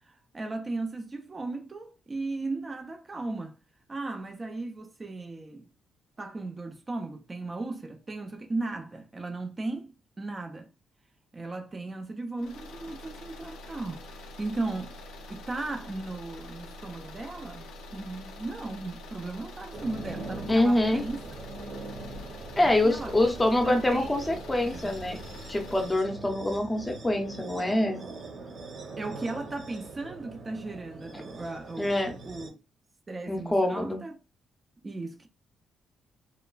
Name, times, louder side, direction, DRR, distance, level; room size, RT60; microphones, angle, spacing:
voice 1, 0.0-3.6 3.9-5.7 6.2-10.7 11.3-15.0 15.3-21.2 22.6-23.4 23.6-24.3 24.7-24.9 29.0-32.6 33.1-34.2 34.8-35.3, right 2 dB, 25° right, 0.4 m, -36 dB
sound 1, 12.4-26.0, left 1 dB, 80° left, 0.5 m, -45 dB
sound 2, 19.7-32.5, right 3 dB, 50° right, 0.9 m, -42 dB
voice 2, 20.5-21.1 22.6-25.2 25.5-28.0 31.8-32.1 33.3-34.0, left 1 dB, 15° left, 0.6 m, -25 dB
3.0 x 2.3 x 2.3 m
cardioid pair, 90°, 0 cm